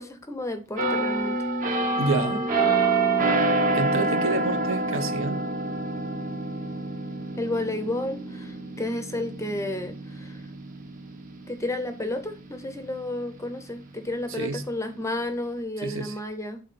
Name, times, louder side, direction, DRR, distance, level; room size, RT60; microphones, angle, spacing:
voice 1, 0.0-1.4 4.0-4.1 7.4-10.4 11.5-16.6, left 1 dB, 15° left, 0.6 m, -32 dB
sound 1, 0.8-12.3 12.7-13.0, right 3 dB, 40° right, 1.0 m, -27 dB
voice 2, 2.0-2.4 3.7-5.4 14.3-14.6 15.8-16.2, right 3 dB, 65° right, 0.9 m, -28 dB
8.1 x 3.9 x 4.2 m
head